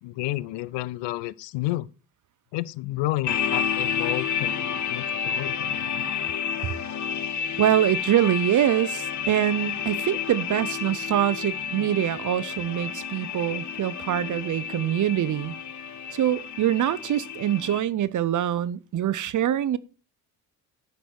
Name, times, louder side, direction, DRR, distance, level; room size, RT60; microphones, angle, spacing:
voice 1, 0.0-1.9 2.5-6.1, left 18 dB, 80° left, 0.5 m, -31 dB
sound 1, 3.3-17.8, left 8 dB, 45° left, 1.0 m, -30 dB
voice 2, 7.6-15.5 16.1-19.8, right 11 dB, 45° right, 0.6 m, -24 dB
8.8 x 5.3 x 4.6 m
supercardioid pair, 65°, 42 cm